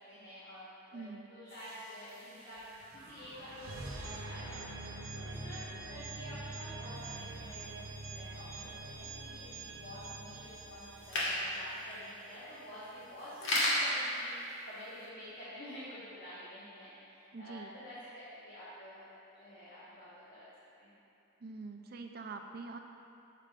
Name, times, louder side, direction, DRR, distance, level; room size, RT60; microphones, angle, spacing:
voice 1, 0.1-2.6 2.9-5.6 5.9-20.4 20.8-20.9, equal, 45° left, -12 dB, 1.5 m, -49 dB
voice 2, 0.9-1.3 17.3-17.7 21.4-22.8, right 3 dB, 45° right, 4 dB, 0.5 m, -44 dB
sound 1, 1.5-12.3, right 2 dB, 80° right, 1.0 m, -45 dB
sound 2, 6.9-15.1, equal, 70° left, 1.5 m, -38 dB
8.9 x 7.5 x 2.5 m, 2.7 s
head